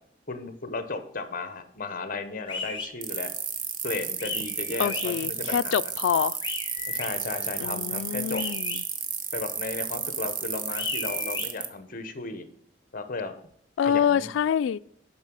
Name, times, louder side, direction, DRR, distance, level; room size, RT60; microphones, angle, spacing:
voice 1, 0.3-3.3 3.8-5.7 6.9-8.4 9.3-12.5 12.9-13.4 13.8-14.3, left 3 dB, 50° left, 1.0 m, -35 dB
sound 1, 2.5-2.9 4.2-5.1 6.4-7.1 8.3-8.8 10.7-11.5, left 4 dB, 25° left, 1.6 m, -35 dB
sound 2, 3.0-11.7, right 7 dB, 50° right, 1.0 m, -32 dB
voice 2, 4.8-6.4 7.6-8.8 13.8-14.8, left 8 dB, 90° left, 0.3 m, -26 dB
7.4 x 5.9 x 6.3 m
head